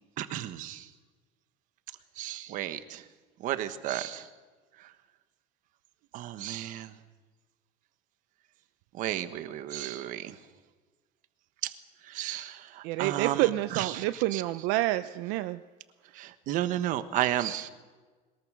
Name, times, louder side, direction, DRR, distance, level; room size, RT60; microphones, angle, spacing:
voice 1, 0.2-0.9 2.2-3.0 3.4-4.3 4.8-4.9 6.1-6.9 8.9-10.4 11.6-11.7 12.0-14.0 14.3-14.4 16.1-17.7, right 13 dB, 45° right, 11 dB, 1.3 m, -33 dB
voice 2, 12.8-15.6, right 16 dB, 70° right, 11 dB, 0.6 m, -28 dB
22.0 x 20.5 x 6.3 m, 1.3 s
cardioid pair, 175°, 18 cm